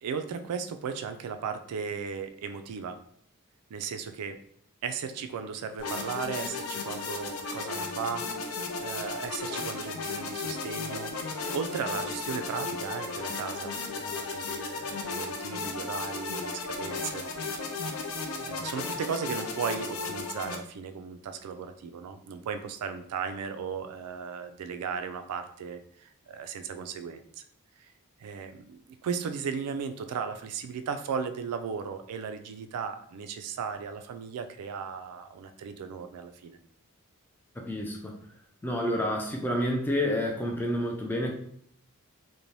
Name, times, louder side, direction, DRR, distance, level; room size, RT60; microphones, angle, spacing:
voice 1, 0.0-2.9 3.7-4.4 4.8-17.3 17.8-17.9 18.4-27.4 27.8-27.9 28.2-36.6, right 6 dB, 90° right, 8 dB, 0.3 m, -36 dB
sound 1, 5.8-20.6, left 4 dB, 75° left, 0.4 m, -35 dB
voice 2, 37.6-38.1 38.6-41.3, left 1 dB, 10° left, 0 dB, 0.3 m, -29 dB
2.6 x 2.1 x 3.1 m, 0.65 s
head